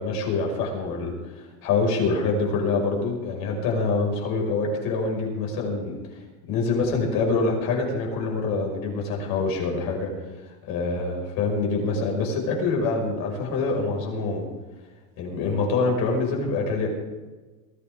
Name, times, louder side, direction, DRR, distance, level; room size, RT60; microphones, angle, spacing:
voice 1, 0.0-6.0 6.5-10.1 10.7-14.4 15.2-16.9, left 3 dB, 60° left, 1 dB, 5.7 m, -25 dB
22.5 x 14.5 x 3.7 m, 1.2 s
cardioid pair, 150°, 40 cm